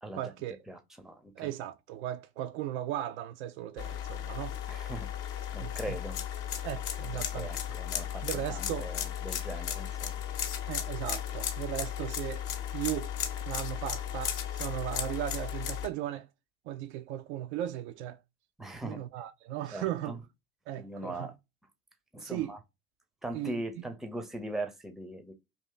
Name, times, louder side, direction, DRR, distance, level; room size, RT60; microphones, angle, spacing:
voice 1, 0.1-0.6 1.4-4.6 5.6-6.0 6.6-7.5 8.2-8.9 10.7-12.4 12.7-13.1 13.5-16.3 16.7-18.2 18.8-20.2 20.7-21.3 22.2-22.6 23.3-23.9, right 13 dB, 55° right, 0.5 m, -37 dB
voice 2, 0.7-1.5 4.7-5.1 5.5-6.2 7.1-10.2 18.6-19.1 19.7-20.2 20.7-21.4 22.1-22.6 23.2-25.3, right 1 dB, ahead, 0.6 m, -40 dB
sound 1, 3.8-15.9, left 10 dB, 50° left, 0.8 m, -35 dB
2.8 x 2.8 x 3.6 m
figure-of-eight pair, 60°, 41 cm